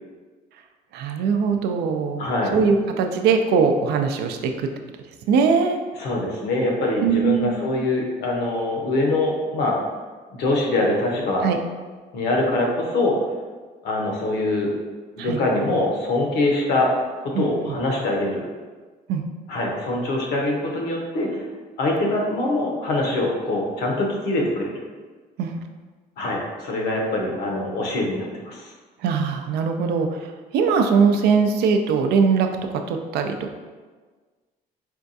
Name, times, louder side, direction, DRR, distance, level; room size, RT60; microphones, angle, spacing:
voice 1, 0.9-4.7 5.3-5.8 7.0-7.6 11.4-11.6 15.2-15.4 17.3-17.8 19.1-19.3 25.4-25.5 29.0-32.5 32.9-33.6, right 5 dB, 75° right, 5 dB, 0.4 m, -21 dB
voice 2, 2.2-2.6 6.0-9.8 10.3-11.5 12.1-13.2 13.8-14.7 15.2-16.9 17.2-18.5 19.5-21.4 21.8-24.7 26.2-28.6, left 2 dB, 75° left, -1 dB, 0.8 m, -23 dB
4.4 x 2.3 x 2.6 m, 1.4 s
cardioid pair, 110°, 17 cm